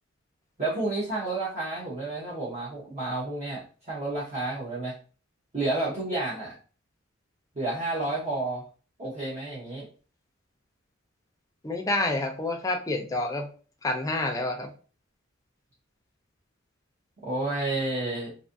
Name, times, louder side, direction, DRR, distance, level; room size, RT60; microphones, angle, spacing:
voice 1, 0.6-4.9 5.5-6.5 7.5-8.6 9.0-9.9 17.2-18.3, right 2 dB, 35° right, -8 dB, 0.8 m, -30 dB
voice 2, 11.6-13.5 13.8-14.7, left 2 dB, 15° left, 3 dB, 0.4 m, -28 dB
2.6 x 2.4 x 2.5 m, 0.38 s
head